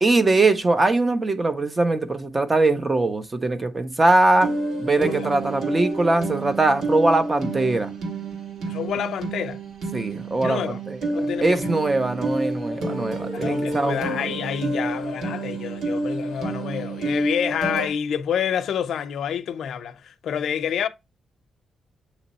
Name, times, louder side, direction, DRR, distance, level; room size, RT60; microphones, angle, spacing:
voice 1, 0.0-4.5 4.8-7.9 9.9-11.0 11.4-14.3, right 2 dB, 20° right, 0.6 m, -21 dB
sound 1, 4.4-17.9, right 2 dB, 90° right, 1.6 m, -29 dB
voice 2, 5.0-5.3 8.7-9.6 10.4-10.8 11.1-11.7 13.3-20.9, left 8 dB, 70° left, 0.5 m, -28 dB
7.8 x 3.1 x 4.1 m
wide cardioid pair, 160°, 0 cm